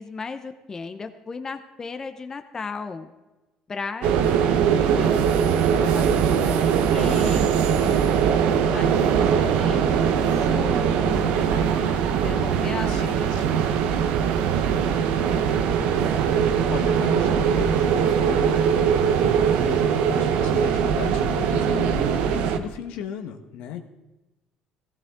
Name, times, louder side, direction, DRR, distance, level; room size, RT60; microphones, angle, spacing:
voice 1, 0.0-3.1 3.7-4.1 4.9-5.2 5.5-8.0 8.6-11.3 12.2-13.6 22.3-22.7, left 4 dB, 25° left, 8 dB, 0.9 m, -35 dB
sound 1, 4.0-22.6, right 7 dB, 75° right, 1.0 m, -21 dB
voice 2, 12.9-13.7 16.6-23.8, left 8 dB, 75° left, 6 dB, 1.3 m, -36 dB
15.0 x 15.0 x 3.7 m, 1.1 s
cardioid pair, 105°, 2 cm